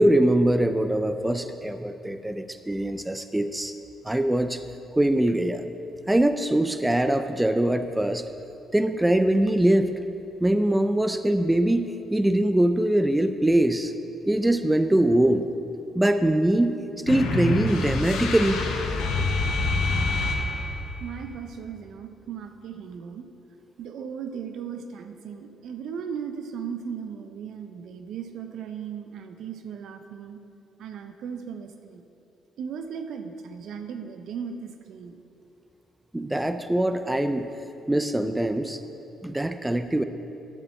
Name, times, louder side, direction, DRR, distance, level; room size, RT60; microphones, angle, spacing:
voice 1, 0.0-3.7 4.1-4.6 5.0-5.6 6.1-8.2 8.7-9.9 10.4-11.8 12.1-13.9 14.3-15.5 15.9-16.8 17.1-18.6 36.1-37.4 37.9-38.8 39.2-40.0, right 1 dB, 10° right, 9 dB, 0.4 m, -22 dB
sound 1, 17.1-20.9, left 2 dB, 90° left, 1.0 m, -26 dB
voice 2, 19.8-20.4 21.0-23.3 23.8-30.4 30.8-32.0 32.6-35.2, right 7 dB, 75° right, 7 dB, 0.6 m, -37 dB
11.0 x 7.4 x 4.3 m, 2.9 s
cardioid pair, 90°, 0 cm